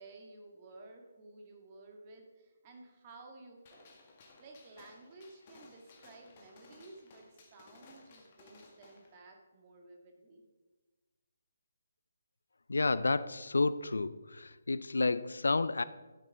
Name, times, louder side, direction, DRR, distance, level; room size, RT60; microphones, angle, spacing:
voice 1, 0.0-3.9 4.4-10.4, right 2 dB, 30° right, 2 dB, 1.9 m, -54 dB
Gunshot gunfire, 3.7-9.1, left 3 dB, 35° left, 1.9 m, -59 dB
voice 2, 12.7-15.8, left 3 dB, 70° left, 16 dB, 0.4 m, -30 dB
12.5 x 9.7 x 3.7 m, 1.2 s
figure-of-eight pair, 140°, 0 cm